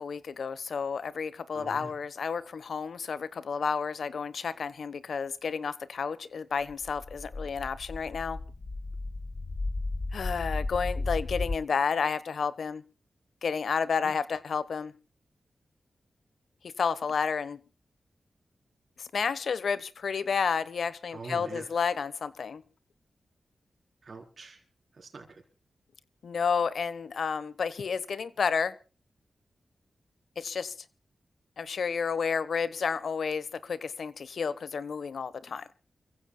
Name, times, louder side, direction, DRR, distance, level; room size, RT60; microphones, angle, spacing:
voice 1, 0.0-8.4 10.1-12.8 13.4-14.9 16.8-17.6 19.0-22.6 26.2-28.7 30.4-30.7 31.6-35.7, left 6 dB, 80° left, 17 dB, 1.1 m, -31 dB
voice 2, 1.5-1.9 14.0-14.1 21.1-21.7 24.0-24.6 24.9-25.4, right 3 dB, 60° right, 2 dB, 4.1 m, -43 dB
sound 1, 6.7-11.5, left 2 dB, 60° left, 4.3 m, -34 dB
29.5 x 15.5 x 2.3 m, 0.34 s
cardioid pair, 55°, 0 cm